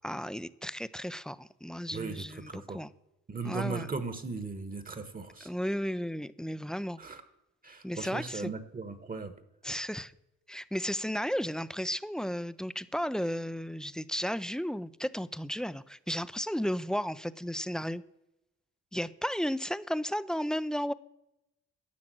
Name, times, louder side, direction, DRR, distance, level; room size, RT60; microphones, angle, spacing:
voice 1, 0.0-2.9 3.4-3.9 5.4-7.0 7.8-8.5 9.6-10.1 10.5-18.0 18.9-20.9, equal, ahead, 16 dB, 0.4 m, -34 dB
voice 2, 1.9-2.8 3.3-5.5 7.0-7.2 7.6-9.3, right 4 dB, 30° right, 11 dB, 1.2 m, -37 dB
12.0 x 5.9 x 7.6 m, 0.90 s
cardioid pair, 90°, 30 cm